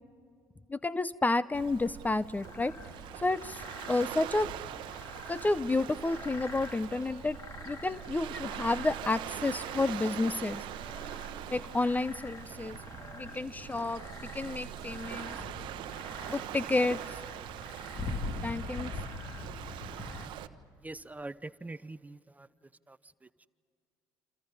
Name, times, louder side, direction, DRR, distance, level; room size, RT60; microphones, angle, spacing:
voice 1, 0.7-2.8 3.2-3.6 3.9-4.5 5.3-7.4 7.7-10.6 11.5-12.8 13.1-14.0 14.3-15.4 16.3-17.0 18.4-18.9, left 2 dB, 20° left, 18 dB, 0.6 m, -30 dB
Waves surf, 1.5-20.5, right 12 dB, 70° right, 0.9 m, -42 dB
sound 1, 2.4-20.3, left 3 dB, 40° left, 2.8 m, -45 dB
voice 2, 20.8-22.5 22.9-23.0, right 2 dB, 20° right, 16 dB, 0.8 m, -43 dB
28.0 x 27.5 x 5.6 m, 2.3 s
hypercardioid pair, 55°, 9 cm